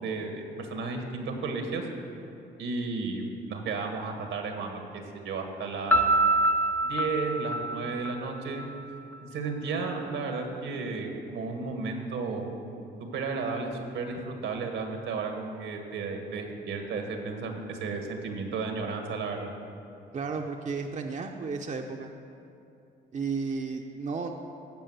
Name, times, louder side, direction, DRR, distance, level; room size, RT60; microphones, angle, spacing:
voice 1, 0.0-1.8 2.6-3.2 3.5-4.8 5.1-6.1 6.8-8.7 9.3-12.5 13.1-19.5, right 4 dB, 80° right, 3 dB, 1.7 m, -33 dB
Piano, 5.9-8.7, right 2 dB, 10° left, 0.6 m, -25 dB
voice 2, 20.1-22.1 23.1-24.3, right 4 dB, 35° right, 3 dB, 0.8 m, -33 dB
15.0 x 5.4 x 8.0 m, 2.7 s
cardioid pair, 90°, 20 cm